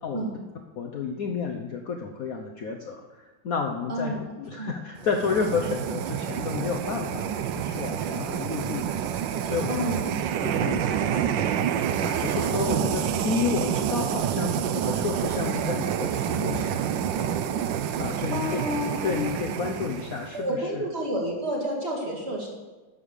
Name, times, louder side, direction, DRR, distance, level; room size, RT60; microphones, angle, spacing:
voice 1, 0.0-0.3 0.8-8.9 9.4-9.9 10.4-16.9 18.0-18.4 19.0-20.8, left 5 dB, 60° left, 2 dB, 1.0 m, -31 dB
sound 1, 5.0-20.4, right 9 dB, 75° right, 1.3 m, -28 dB
voice 2, 9.7-10.1 12.7-12.8 18.3-19.3 20.3-22.5, equal, 30° right, -1 dB, 2.2 m, -30 dB
11.0 x 7.1 x 6.5 m, 1.2 s
omnidirectional pair, 2.2 m